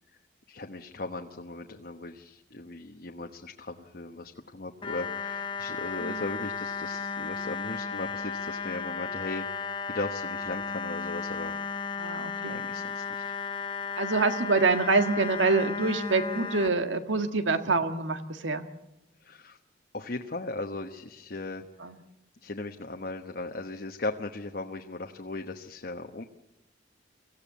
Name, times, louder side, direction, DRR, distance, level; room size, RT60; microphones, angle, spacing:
voice 1, 0.5-11.6 12.5-13.2 19.2-19.6 19.9-21.6 22.4-26.2, left 2 dB, 50° left, 4 dB, 1.1 m, -37 dB
sound 1, 4.8-16.7, left 5 dB, 25° left, 0.8 m, -34 dB
voice 2, 12.0-12.6 14.0-18.6 21.8-22.0, right 3 dB, 85° right, 8 dB, 1.7 m, -26 dB
24.5 x 16.0 x 8.4 m, 0.94 s
head